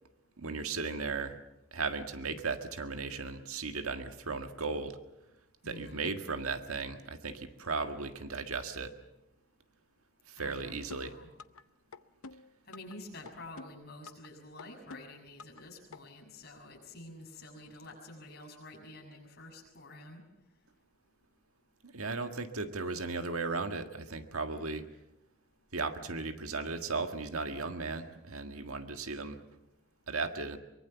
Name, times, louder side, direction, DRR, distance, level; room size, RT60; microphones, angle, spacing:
voice 1, 0.4-1.4 1.7-5.0 5.7-8.9 10.3-11.1 21.8-24.8 25.7-29.4 30.1-30.6, right 4 dB, 85° right, 7 dB, 1.8 m, -36 dB
voice 2, 5.6-6.1 10.4-11.3 12.7-20.2, left 2 dB, 45° left, 1 dB, 6.6 m, -49 dB
sound 1, 10.9-11.6 11.9-13.0 13.3-14.3 14.6-15.6 15.9-16.0, left 3 dB, 80° left, 0.8 m, -48 dB
24.0 x 22.5 x 7.1 m, 0.92 s
head